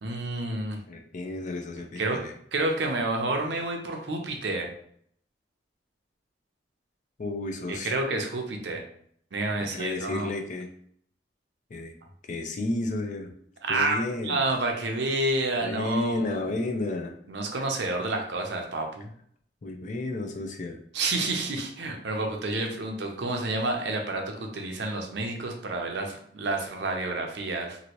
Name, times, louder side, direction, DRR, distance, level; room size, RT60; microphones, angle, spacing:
voice 1, 0.0-0.8 2.0-2.2 2.5-4.7 7.7-8.8 9.3-10.3 13.6-14.0 14.2-16.4 17.3-19.1 20.9-27.8, right 2 dB, 70° right, 2 dB, 0.6 m, -29 dB
voice 2, 0.9-2.3 7.2-8.0 9.6-10.7 11.7-12.0 12.3-13.3 13.7-14.5 15.6-17.1 19.6-20.8, left 2 dB, 45° left, 3 dB, 0.5 m, -32 dB
2.9 x 2.6 x 2.9 m, 0.64 s
head